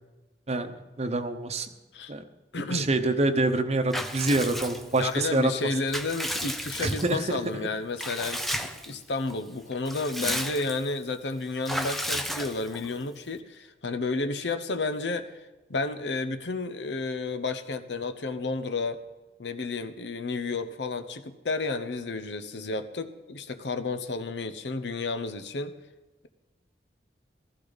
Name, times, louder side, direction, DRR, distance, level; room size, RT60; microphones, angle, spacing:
voice 1, 1.0-1.7 2.1-2.2 2.7-5.5 6.8-7.4, right 2 dB, 40° right, 8 dB, 0.9 m, -26 dB
voice 2, 2.5-2.9 5.0-15.3 15.7-19.0 19.4-25.7, left 3 dB, 75° left, 10 dB, 0.8 m, -31 dB
Water / Bathtub (filling or washing) / Liquid, 3.9-5.1 5.6-7.3 8.0-8.9 9.3-9.4 9.7-10.9 11.6-12.9, equal, ahead, 0.7 m, -33 dB
15.5 x 13.5 x 4.0 m, 1.1 s
head